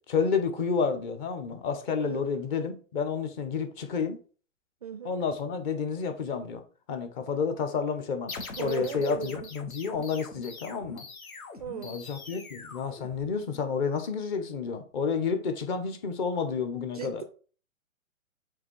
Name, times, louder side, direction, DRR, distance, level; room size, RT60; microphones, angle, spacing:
voice 1, 0.1-4.2 5.0-6.6 6.9-8.3 8.6-11.0 11.8-17.2, left 5 dB, 35° left, 1.0 m, -30 dB
voice 2, 2.0-2.3 4.8-5.2 8.6-9.5 11.6-12.0 16.9-17.2, right 8 dB, 30° right, 0.3 m, -37 dB
sound 1, 8.3-13.7, left 3 dB, 85° left, 1.5 m, -43 dB
7.4 x 2.8 x 4.6 m
hypercardioid pair, 135°, 41 cm